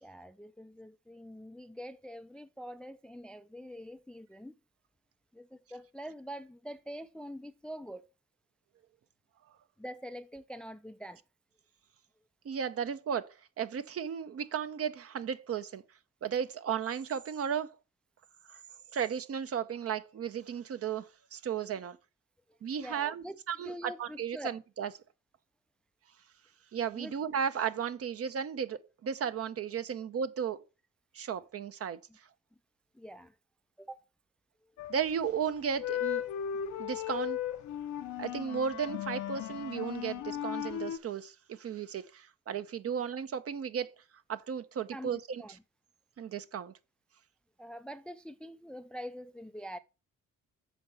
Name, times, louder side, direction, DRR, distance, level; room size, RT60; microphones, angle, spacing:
voice 1, 0.0-4.5 5.3-8.1 9.8-11.2 22.8-24.6 26.9-27.1 32.9-33.3 33.8-34.0 44.9-45.6 47.6-49.8, equal, 5° left, 0.4 m, -45 dB
voice 2, 12.4-15.8 16.2-17.7 18.5-18.6 18.9-22.0 22.6-24.9 26.7-30.6 31.1-32.0 34.9-36.2 36.8-37.4 38.2-43.9 44.3-45.4 46.2-46.7, right 7 dB, 50° right, 0.8 m, -35 dB
sound 1, 34.8-35.2 35.7-41.0, left 10 dB, 70° left, 0.7 m, -36 dB
7.3 x 4.7 x 5.5 m
cardioid pair, 90°, 30 cm